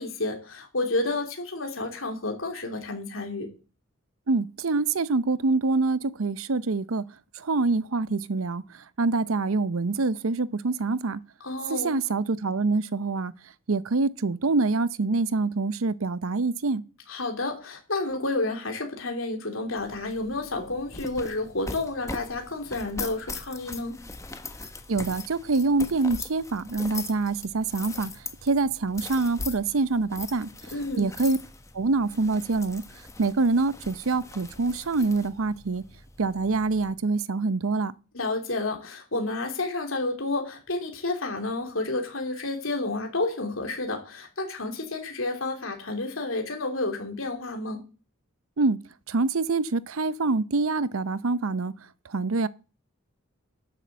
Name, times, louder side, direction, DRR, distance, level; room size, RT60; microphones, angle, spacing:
voice 1, 0.0-3.5 11.4-12.0 17.1-24.0 30.7-31.1 38.1-47.8, left 2 dB, 75° left, 3.3 m, -30 dB
voice 2, 4.3-7.0 7.3-11.2 11.7-13.3 13.7-16.8 24.9-30.5 31.0-31.4 31.7-32.8 33.2-35.8 36.2-37.9 48.6-48.8 49.1-51.7 52.0-52.5, right 3 dB, 85° right, 0.7 m, -25 dB
sound 1, 19.8-36.9, left 3 dB, 15° left, 1.3 m, -41 dB
12.0 x 7.6 x 7.7 m
head